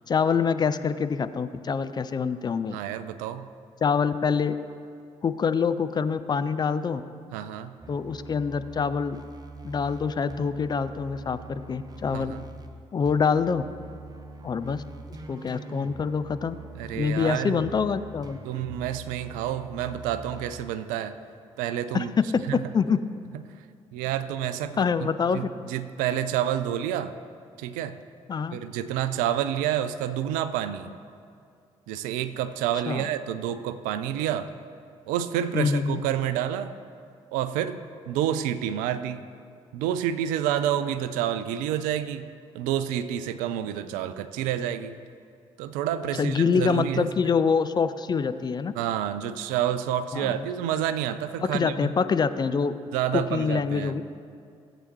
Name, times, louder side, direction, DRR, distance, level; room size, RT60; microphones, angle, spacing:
voice 1, 0.1-2.8 3.8-4.6 5.2-7.0 7.9-9.2 9.6-12.3 12.9-13.6 14.4-14.8 15.3-16.5 16.9-18.4 21.9-22.3 22.7-23.0 24.8-25.5 28.3-28.6 32.9-33.1 35.5-36.0 46.2-48.7 50.1-50.4 51.4-52.7 53.1-54.0, left 6 dB, 30° left, 12 dB, 0.4 m, -25 dB
voice 2, 2.7-3.5 7.3-7.8 12.1-12.4 16.8-17.6 18.4-21.2 21.6-22.1 22.5-22.6 23.9-27.1 27.6-28.0 28.5-31.0 31.9-34.5 35.1-36.7 37.3-37.8 38.1-39.2 39.7-42.3 42.5-44.9 45.6-47.3 48.8-51.9 52.9-54.0, right 10 dB, 65° right, 12 dB, 0.5 m, -29 dB
sound 1, 7.8-12.7 13.0-20.6, right 3 dB, 25° right, 1.0 m, -44 dB
16.5 x 7.7 x 3.1 m, 2.3 s
figure-of-eight pair, 45°, 15 cm